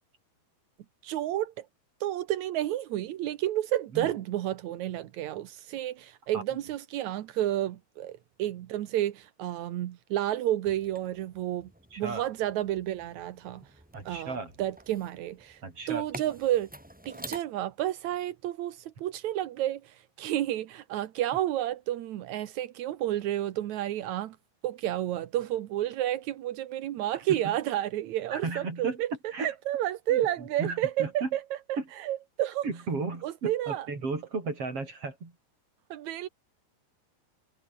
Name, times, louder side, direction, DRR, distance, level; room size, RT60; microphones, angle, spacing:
voice 1, 1.0-1.7 2.0-11.7 12.0-13.6 14.1-15.6 15.9-16.7 17.1-24.4 24.6-29.1 29.4-31.4 32.0-32.7 33.2-33.9 35.9-36.3, right 13 dB, 70° right, 1.8 m, -31 dB
sound 1, 10.6-17.4, right 1 dB, 10° right, 0.4 m, -48 dB
voice 2, 11.9-12.2 13.9-14.6 15.6-16.1 27.3-27.6 28.3-29.0 29.3-29.5 30.1-31.3 31.8-31.9 32.6-35.3, right 4 dB, 35° right, 5.4 m, -35 dB
omnidirectional pair, 4.8 m